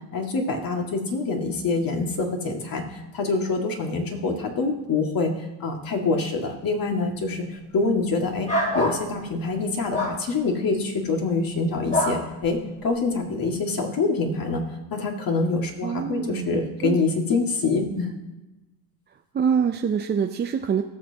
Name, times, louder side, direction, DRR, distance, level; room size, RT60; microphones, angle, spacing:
voice 1, 0.1-8.5 8.7-18.1, left 3 dB, 45° left, 2 dB, 2.2 m, -26 dB
sound 1, 8.5-9.0 9.9-10.2 11.9-12.2, left 1 dB, 15° left, 2.3 m, -24 dB
voice 2, 15.8-17.0 19.3-20.8, right 7 dB, 20° right, 5 dB, 0.5 m, -25 dB
17.5 x 6.5 x 2.9 m, 1.0 s
hypercardioid pair, 75°, 48 cm